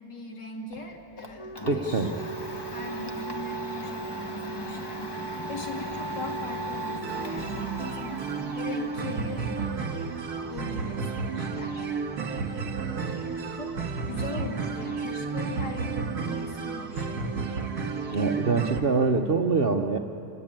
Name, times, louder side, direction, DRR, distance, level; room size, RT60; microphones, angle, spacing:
voice 1, 0.0-2.1 2.7-8.2 8.5-9.9 10.5-11.8 12.8-17.3, left 2 dB, 50° left, 1 dB, 3.0 m, -40 dB
Domestic sounds home sounds, 0.7-16.6, equal, 30° left, 0.4 m, -40 dB
Wind instrument woodwind instrument, 1.3-7.4, right 4 dB, 15° right, 3.1 m, -40 dB
voice 2, 1.6-2.1 18.1-20.0, right 4 dB, 85° right, 3 dB, 0.5 m, -24 dB
sound 1, 7.0-18.8, right 5 dB, 45° right, 2.1 m, -32 dB
27.5 x 21.0 x 8.9 m, 3.0 s
omnidirectional pair, 2.4 m